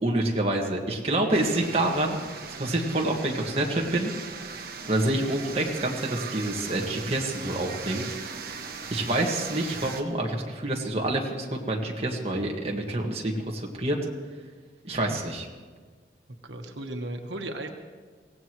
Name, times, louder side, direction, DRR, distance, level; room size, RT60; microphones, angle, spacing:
voice 1, 0.0-4.1 4.8-8.0 8.9-14.0 14.8-15.5, right 1 dB, 35° right, -1 dB, 1.8 m, -27 dB
sound 1, 1.3-10.0, right 5 dB, 55° right, 1.2 m, -39 dB
voice 2, 16.4-17.7, right 1 dB, 90° right, 3 dB, 1.3 m, -35 dB
23.5 x 17.0 x 3.1 m, 1.5 s
head